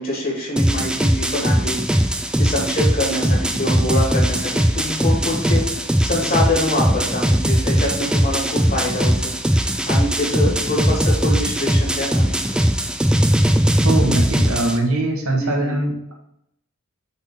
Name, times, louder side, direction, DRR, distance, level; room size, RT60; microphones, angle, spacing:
voice 1, 0.0-9.3 9.6-12.4 15.4-15.7, left 1 dB, 45° left, -3 dB, 2.6 m, -25 dB
sound 1, 0.6-14.8, equal, 5° right, 0.4 m, -19 dB
voice 2, 13.8-16.1, right 2 dB, 85° right, 0 dB, 1.7 m, -22 dB
6.4 x 3.9 x 5.5 m, 0.78 s
head